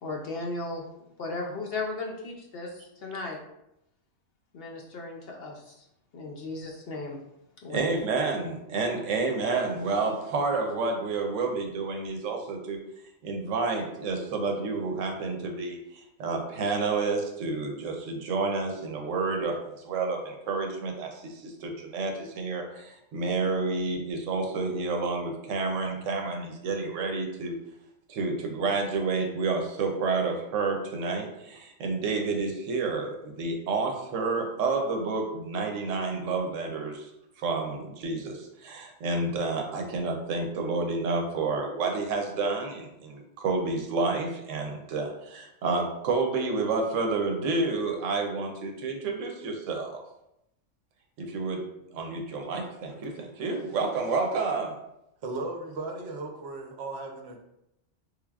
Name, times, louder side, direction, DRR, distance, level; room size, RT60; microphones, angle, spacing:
voice 1, 0.0-0.8 1.2-3.4 4.5-5.8 6.1-7.2 7.6-7.9, left 3 dB, 60° left, 0 dB, 0.7 m, -36 dB
voice 2, 7.7-12.8 13.2-27.5 28.1-37.1 37.4-50.0 51.2-51.6 51.9-54.8, right 3 dB, 90° right, 3 dB, 1.0 m, -29 dB
voice 3, 55.2-57.4, right 2 dB, 65° right, 2 dB, 0.8 m, -36 dB
3.4 x 3.3 x 2.3 m, 0.84 s
omnidirectional pair, 1.3 m